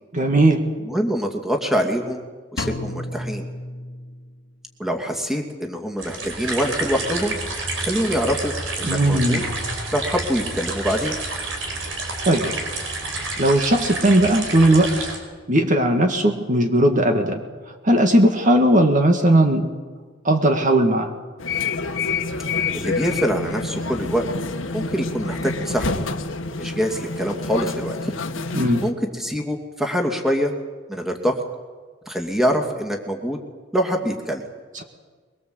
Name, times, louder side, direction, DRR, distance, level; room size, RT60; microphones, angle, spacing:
voice 1, 0.1-0.6 8.8-9.4 12.3-12.5 13.4-15.1 15.5-17.4 17.8-19.7 20.2-21.1 28.5-28.8, right 1 dB, 40° right, 4 dB, 1.9 m, -17 dB
voice 2, 0.8-2.2 2.5-3.4 4.8-7.4 7.8-9.4 9.9-11.2 22.7-24.3 24.7-26.0 26.5-28.1 28.8-30.5 30.9-31.4 32.1-33.4 33.7-34.4, equal, ahead, 2 dB, 2.6 m, -24 dB
Drum, 2.6-4.5, left 1 dB, 65° left, 1.6 m, -32 dB
sound 1, 6.0-15.2, right 2 dB, 80° right, 5.1 m, -29 dB
sound 2, 21.4-28.9, left 3 dB, 85° left, 1.5 m, -27 dB
23.0 x 23.0 x 8.0 m, 1.4 s
head